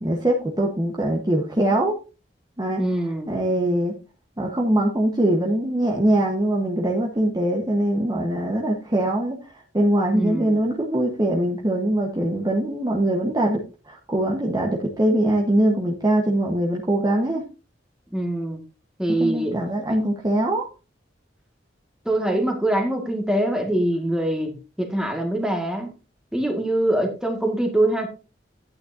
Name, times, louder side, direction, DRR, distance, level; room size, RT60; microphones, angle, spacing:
voice 1, 0.0-2.0 2.6-2.8 3.3-3.9 4.4-9.4 9.7-13.6 13.9-17.4 19.2-20.7, right 1 dB, 20° right, -1 dB, 1.2 m, -22 dB
voice 2, 2.8-3.3 10.1-10.6 18.1-18.6 19.0-19.6 19.9-20.0 22.1-25.9 26.3-28.1, right 1 dB, 5° right, 3 dB, 1.8 m, -24 dB
11.5 x 9.0 x 2.7 m, 0.31 s
head